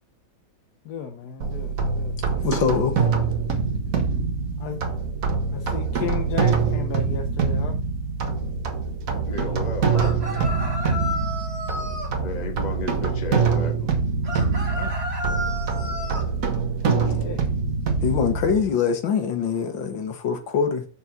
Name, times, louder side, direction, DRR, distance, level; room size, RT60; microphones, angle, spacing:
voice 1, 0.8-2.4 4.6-4.8 5.5-7.8 14.7-14.9 16.8-17.5, left 7 dB, 60° left, 1.4 m, -34 dB
sound 1, 1.4-18.6, right 5 dB, 50° right, 1.6 m, -24 dB
voice 2, 2.4-2.9 18.0-20.9, left 6 dB, 80° left, 2.1 m, -23 dB
voice 3, 9.2-10.2 12.2-13.9, left 3 dB, 25° left, 1.4 m, -33 dB
sound 2, 9.9-12.1 14.2-16.3, equal, 35° right, 2.0 m, -32 dB
6.8 x 5.5 x 5.8 m
omnidirectional pair, 2.1 m